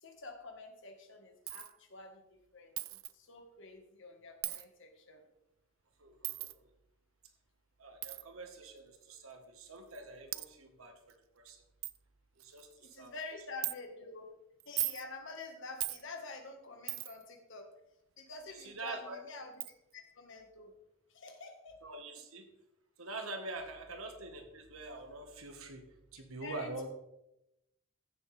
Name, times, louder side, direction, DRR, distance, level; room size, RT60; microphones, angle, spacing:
voice 1, 0.0-5.2 12.8-14.3 14.7-17.7 18.2-19.5 19.9-20.7 21.1-21.8 23.9-24.0 26.4-26.9, left 3 dB, 65° left, 4 dB, 1.8 m, -48 dB
Coin (dropping), 1.5-1.7 2.8-3.1 4.4-4.6 6.2-6.5 8.0-8.2 9.2-9.3 9.9-10.0 10.3-10.5 11.1-11.2 11.5-11.6 11.8-12.0 12.4-12.7 13.6-13.8 14.6-15.0 15.8-16.0 16.9-17.2 18.9-19.0 19.6-19.7, right 18 dB, 70° right, 0.4 m, -37 dB
voice 2, 6.0-6.7 7.8-11.6 12.4-13.1 18.5-19.2 21.8-22.5 23.0-25.8 26.1-26.9, right 2 dB, 90° right, 5 dB, 1.6 m, -45 dB
15.0 x 7.4 x 3.5 m, 0.87 s
head